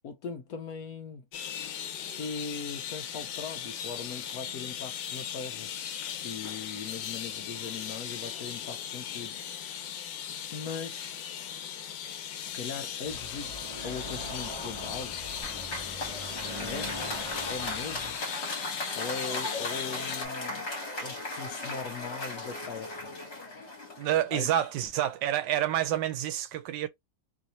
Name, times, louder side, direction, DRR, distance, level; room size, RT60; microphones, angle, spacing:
voice 1, 0.0-1.2 2.1-5.7 6.2-9.4 10.5-11.2 12.4-15.2 16.6-17.0 17.5-18.2 18.9-20.7 21.0-23.1 24.3-24.5, left 5 dB, 70° left, 0.9 m, -40 dB
sound 1, 1.3-20.3, left 9 dB, 85° left, 1.3 m, -38 dB
Car passing by / Traffic noise roadway noise, 13.0-18.2, equal, 20° right, 0.9 m, -41 dB
Applause, 15.4-24.8, left 2 dB, 40° left, 1.5 m, -37 dB
voice 2, 24.0-26.9, right 11 dB, 85° right, 1.3 m, -28 dB
3.2 x 2.5 x 2.8 m
omnidirectional pair, 2.0 m